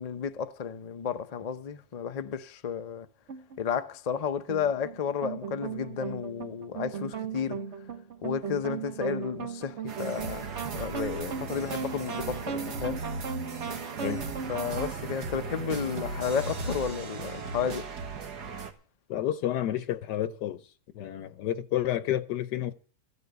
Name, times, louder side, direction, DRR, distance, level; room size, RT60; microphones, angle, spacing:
voice 1, 0.0-3.1 3.6-7.6 8.2-13.0 14.5-17.9, left 7 dB, 55° left, 0.4 m, -32 dB
sound 1, 3.3-3.6 4.5-14.9, right 6 dB, 50° right, 1.2 m, -37 dB
sound 2, 9.9-18.7, right 4 dB, 80° right, 2.0 m, -37 dB
voice 2, 19.1-20.6 20.9-22.7, left 12 dB, 90° left, 1.4 m, -30 dB
14.5 x 7.0 x 8.1 m
omnidirectional pair, 1.7 m